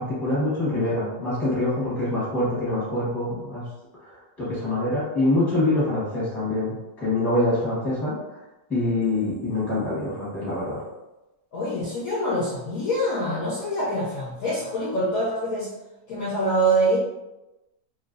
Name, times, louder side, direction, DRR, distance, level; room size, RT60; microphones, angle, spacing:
voice 1, 0.0-3.6 4.0-8.1 8.7-10.8, left 2 dB, ahead, -8 dB, 0.9 m, -25 dB
voice 2, 11.5-15.7 16.1-17.0, right 1 dB, 65° left, -6 dB, 0.9 m, -25 dB
3.0 x 2.6 x 2.5 m, 1.0 s
omnidirectional pair, 1.9 m